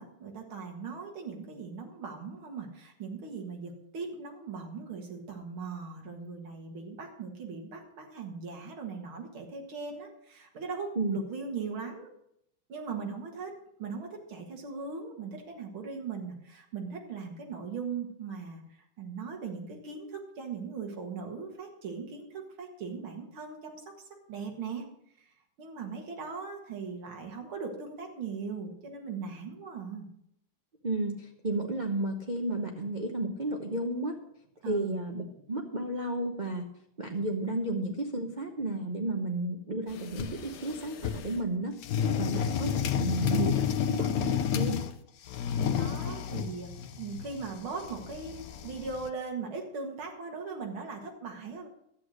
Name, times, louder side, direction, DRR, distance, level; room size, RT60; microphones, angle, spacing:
voice 1, 0.0-12.1 12.7-13.5 13.8-23.9 24.3-24.8 25.2-25.3 25.6-30.1 34.6-35.0 43.3-43.6 45.7-46.7 47.0-51.7, right 5 dB, 80° right, 2 dB, 2.6 m, -39 dB
voice 2, 30.8-34.2 34.6-36.6 37.0-41.8 42.2-43.5 43.9-44.9, right 2 dB, 45° right, 3 dB, 0.6 m, -32 dB
sound 1, 39.9-41.4 41.8-44.9 45.2-49.1, left 8 dB, 60° left, 1.0 m, -31 dB
12.0 x 8.2 x 6.3 m, 0.77 s
omnidirectional pair, 2.3 m